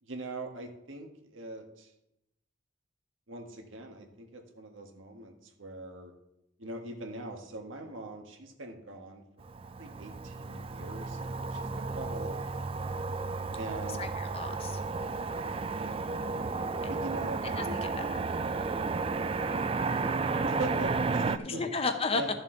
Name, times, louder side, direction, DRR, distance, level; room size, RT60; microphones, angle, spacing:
voice 1, 0.0-1.9 3.3-6.1 6.6-9.2 9.8-12.6 13.6-14.1 15.5-16.1 16.9-18.1 19.1-19.5 19.8-21.6 22.1-22.3, right 2 dB, 80° right, 4 dB, 1.5 m, -42 dB
Motor vehicle (road), 9.4-21.4, right 4 dB, 30° right, 0.3 m, -33 dB
voice 2, 14.0-14.8 17.6-18.0 21.4-22.2, left 4 dB, 30° left, 7 dB, 0.7 m, -33 dB
13.0 x 7.0 x 3.8 m, 0.86 s
head